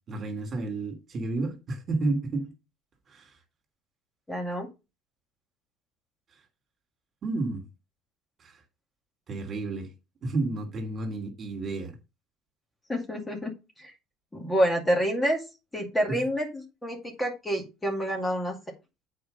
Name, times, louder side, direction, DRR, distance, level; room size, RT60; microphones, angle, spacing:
voice 1, 0.1-2.5 3.1-3.4 7.2-7.6 8.4-8.6 9.3-9.9 10.2-12.0 16.1-16.2, right 2 dB, 40° right, 2.9 m, -31 dB
voice 2, 4.3-4.7 12.9-13.5 13.8-13.9 14.3-15.4 15.7-18.5, equal, 10° left, 2.4 m, -28 dB
7.8 x 4.8 x 5.4 m
supercardioid pair, 100°, 0 cm